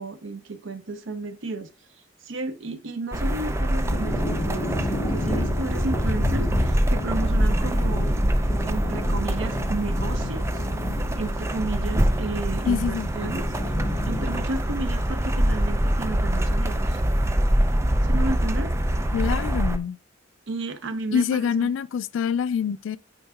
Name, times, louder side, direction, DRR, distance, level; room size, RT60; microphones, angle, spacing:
voice 1, 0.0-1.7 2.2-8.1 8.7-10.7 11.2-13.5 14.1-17.0 18.0-18.7 20.5-21.7, right 2 dB, 85° right, 0.7 m, -33 dB
sound 1, 3.1-19.8, right 1 dB, 15° right, 0.4 m, -24 dB
sound 2, 3.8-15.7, left 1 dB, 25° left, 2.4 m, -31 dB
voice 2, 12.7-13.1 19.1-20.0 21.1-23.0, left 7 dB, 80° left, 0.3 m, -25 dB
9.1 x 4.7 x 2.3 m
head